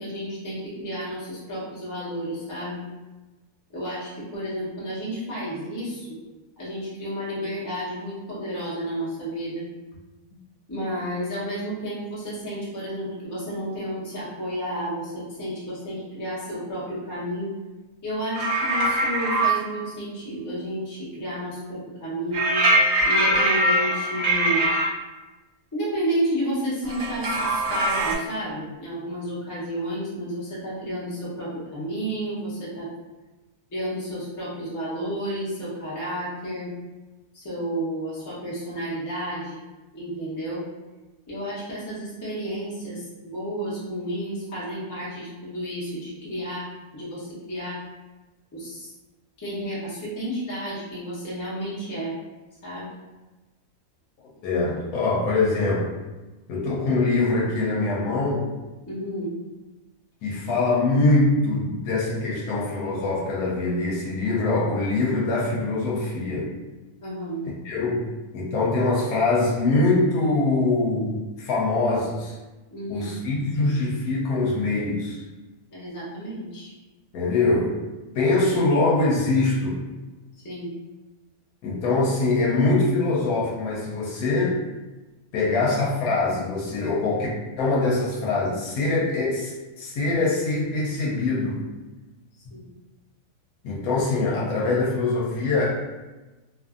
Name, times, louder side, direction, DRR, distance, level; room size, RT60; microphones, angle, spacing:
voice 1, 0.0-2.8 3.7-6.2 6.6-9.7 10.7-17.5 18.0-22.6 23.0-24.7 25.7-32.9 33.7-36.7 37.3-39.6 39.9-40.6 41.3-47.8 48.5-48.9 49.4-52.1 52.6-52.9 58.9-59.3 67.0-67.4 72.7-73.1 75.7-76.7 80.4-80.7 92.4-92.7, equal, 20° left, -9 dB, 0.6 m, -31 dB
sound 1, 18.3-19.6 22.3-24.9 26.9-28.1, right 1 dB, 70° right, 1.0 m, -22 dB
voice 2, 54.4-56.0 56.5-58.5 60.2-66.5 67.6-72.4 72.9-75.2 77.1-77.8 78.1-79.8 81.6-84.6 85.3-87.3 87.6-91.6 93.6-95.8, left 3 dB, 90° left, -4 dB, 1.1 m, -23 dB
2.5 x 2.5 x 2.4 m, 1.1 s
omnidirectional pair, 1.5 m